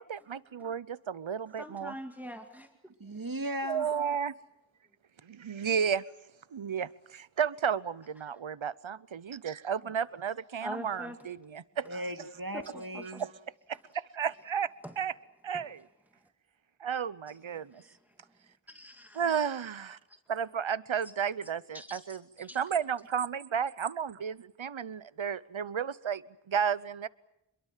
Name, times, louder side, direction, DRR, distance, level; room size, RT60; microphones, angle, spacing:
voice 1, 0.0-2.0 3.7-4.3 5.2-6.0 6.5-12.0 13.2-13.3 13.7-14.7 15.0-15.2 15.4-15.9 16.8-17.8 19.1-20.0 20.3-27.1, right 7 dB, 70° right, 18 dB, 0.9 m, -33 dB
voice 2, 1.6-2.7 10.6-11.2 13.1-13.2 18.7-19.2 21.7-22.0 22.4-22.6, equal, 5° right, 5 dB, 2.2 m, -42 dB
voice 3, 3.0-4.0 9.8-9.9 11.8-13.3, right 1 dB, 45° right, 6 dB, 2.3 m, -37 dB
27.0 x 22.5 x 7.5 m, 0.85 s
wide cardioid pair, 40°, 48 cm